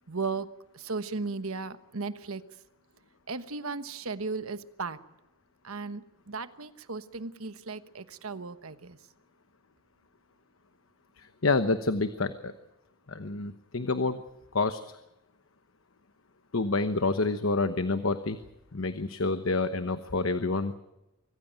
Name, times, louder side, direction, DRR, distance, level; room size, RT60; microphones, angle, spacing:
voice 1, 0.1-0.5 0.7-2.4 3.3-5.0 5.6-9.0, right 4 dB, 80° right, 12 dB, 1.2 m, -36 dB
voice 2, 11.2-12.5 13.1-14.2 14.5-14.8 16.5-18.4 18.7-20.7, left 3 dB, 70° left, 10 dB, 1.0 m, -28 dB
24.5 x 15.5 x 9.0 m, 0.95 s
head